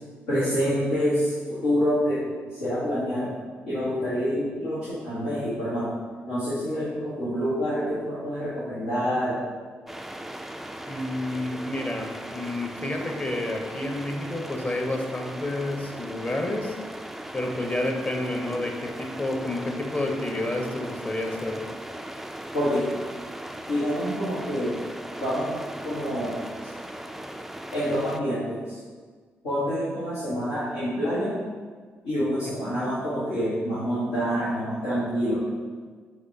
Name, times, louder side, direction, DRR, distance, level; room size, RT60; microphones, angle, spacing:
voice 1, 0.3-3.3 3.7-5.9 6.3-9.4 22.5-22.9 23.7-24.8 25.2-25.6 25.8-26.4 27.7-28.8 29.4-31.4 32.0-35.4, equal, 85° left, -12 dB, 1.3 m, -27 dB
sound 1, 9.9-28.2, right 1 dB, 5° right, 0.3 m, -38 dB
voice 2, 10.9-16.8 17.3-21.6 32.7-32.8, left 1 dB, 30° left, 2 dB, 0.9 m, -30 dB
6.1 x 3.2 x 2.7 m, 1.5 s
hypercardioid pair, 40°, 6 cm